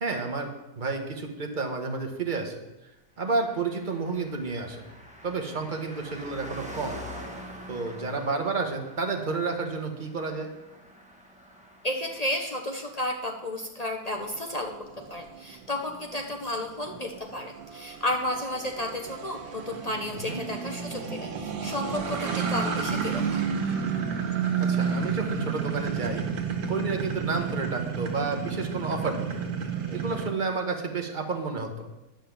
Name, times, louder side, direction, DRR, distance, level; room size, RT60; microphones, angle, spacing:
voice 1, 0.0-0.5 0.8-2.6 3.2-4.8 5.2-7.0 7.7-10.5 20.2-20.4 24.6-26.3 26.7-29.4 29.9-31.9, right 4 dB, 35° right, 4 dB, 1.1 m, -30 dB
Car passing by, 3.2-15.0 15.3-15.4, equal, 5° right, 1.1 m, -46 dB
voice 2, 11.8-14.7 15.1-23.4, left 1 dB, 40° left, 2 dB, 0.5 m, -32 dB
sound 1, 14.2-30.3, right 6 dB, 85° right, 1.7 m, -31 dB
10.5 x 5.7 x 7.0 m, 1.0 s
omnidirectional pair, 1.8 m